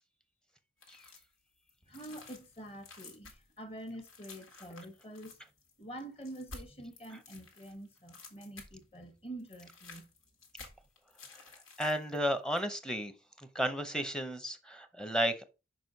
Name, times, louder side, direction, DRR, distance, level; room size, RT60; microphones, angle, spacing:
sound 1, 0.8-1.3 1.7-9.0 9.3-12.2 12.5-12.6, left 3 dB, 90° left, 1.9 m, -53 dB
voice 1, 1.8-5.4 5.8-10.1, right 1 dB, 30° left, 1.1 m, -46 dB
voice 2, 11.8-13.1 13.4-15.4, equal, 5° left, 0.6 m, -33 dB
6.1 x 5.1 x 3.9 m
head